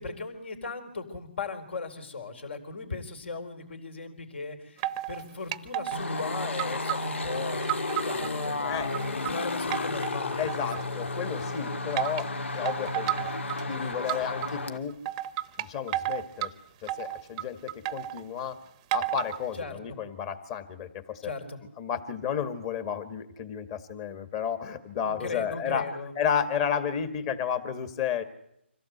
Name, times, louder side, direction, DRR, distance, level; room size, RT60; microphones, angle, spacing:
voice 1, 0.0-10.7 19.5-20.0 21.2-21.6 25.0-26.1, left 3 dB, 65° left, 8 dB, 4.3 m, -38 dB
sound 1, 4.8-5.2 5.5-6.2 6.6-8.3 8.6-9.3 9.7-11.0 12.0-12.2 12.7-13.6 14.1-14.5 15.1-16.5 16.9-18.2 18.9-19.4, right 14 dB, 25° right, 0.8 m, -32 dB
sound 2, 5.9-14.8, left 3 dB, 80° left, 2.1 m, -32 dB
voice 2, 10.4-13.3 13.6-14.9 15.6-16.5 16.8-18.6 18.9-21.2 21.8-25.9 26.2-28.2, left 8 dB, 30° left, 10 dB, 1.9 m, -32 dB
25.5 x 16.0 x 8.1 m, 0.78 s
hypercardioid pair, 150°, 7 cm